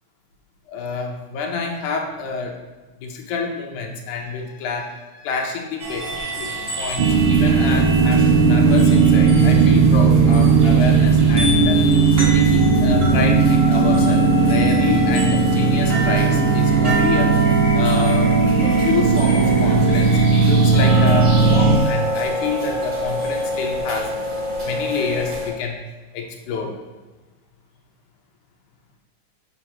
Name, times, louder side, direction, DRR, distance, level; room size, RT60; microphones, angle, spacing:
voice 1, 0.7-2.6 3.0-6.1 6.4-11.8 12.2-17.3 17.7-24.1 24.6-25.8 26.1-26.8, left 4 dB, 80° left, 1 dB, 2.3 m, -28 dB
sound 1, 5.8-25.5, left 1 dB, 25° right, 2.2 m, -27 dB
sound 2, 7.0-21.8, right 4 dB, 85° right, 2.1 m, -16 dB
7.2 x 6.3 x 2.9 m, 1.2 s
omnidirectional pair, 3.5 m